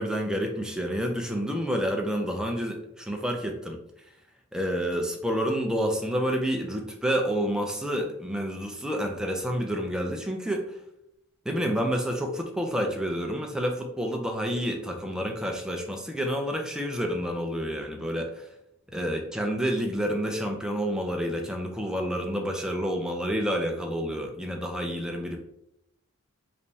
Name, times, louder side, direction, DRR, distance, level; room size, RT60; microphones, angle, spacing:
voice 1, 0.0-3.8 4.5-10.7 11.5-18.4 18.9-25.4, equal, 5° right, 2 dB, 0.4 m, -29 dB
3.3 x 3.0 x 2.7 m, 0.80 s
head